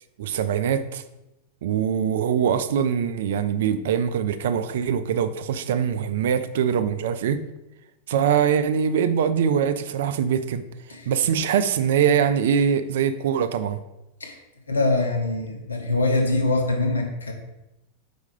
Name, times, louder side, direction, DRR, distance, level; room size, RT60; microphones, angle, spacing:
voice 1, 0.2-1.0 1.6-7.4 8.1-10.6 11.1-13.8, right 8 dB, 55° right, 0.4 m, -23 dB
voice 2, 14.7-17.3, left 2 dB, 75° left, 1.0 m, -23 dB
4.8 x 4.3 x 5.1 m
figure-of-eight pair, 90°, 0 cm